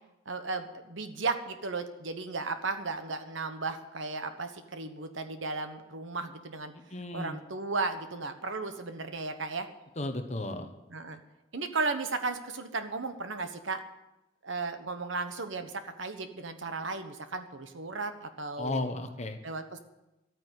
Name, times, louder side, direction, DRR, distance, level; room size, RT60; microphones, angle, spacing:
voice 1, 0.3-6.7 7.1-9.7 10.9-11.2 11.5-13.8 14.4-18.9 19.4-19.8, right 3 dB, 70° right, 8 dB, 1.2 m, -35 dB
voice 2, 6.9-7.4 10.0-10.7 18.6-19.4, left 2 dB, 35° left, 6 dB, 1.2 m, -34 dB
12.5 x 9.2 x 8.2 m, 0.96 s
head